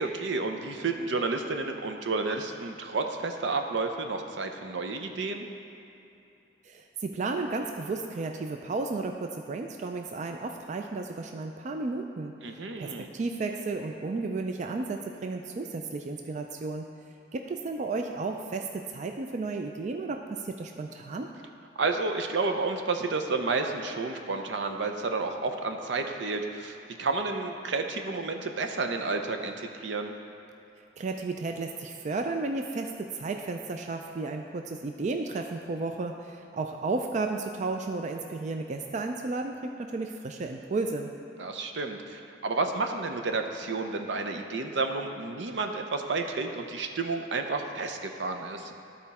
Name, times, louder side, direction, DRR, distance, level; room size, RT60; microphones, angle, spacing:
voice 1, 0.0-5.5 12.4-13.1 21.8-30.1 41.4-48.7, right 3 dB, 80° right, 5 dB, 0.6 m, -31 dB
voice 2, 6.6-12.4 12.8-16.9 17.3-21.3 31.0-41.1, right 3 dB, 40° right, 4 dB, 0.3 m, -33 dB
12.5 x 4.4 x 4.1 m, 2.8 s
head